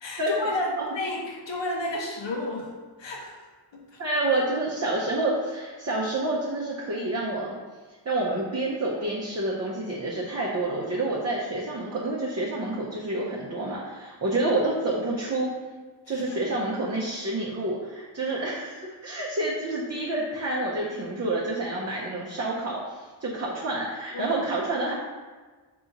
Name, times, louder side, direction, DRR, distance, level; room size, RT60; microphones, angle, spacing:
voice 1, 0.0-2.7 3.0-3.4 3.7-4.0 16.1-16.4 24.1-24.5, left 1 dB, 80° left, -2 dB, 1.0 m, -32 dB
voice 2, 4.0-7.6 8.1-15.5 16.1-24.9, right 2 dB, 35° right, -4 dB, 0.6 m, -28 dB
3.8 x 2.9 x 3.8 m, 1.4 s
wide cardioid pair, 100°, 44 cm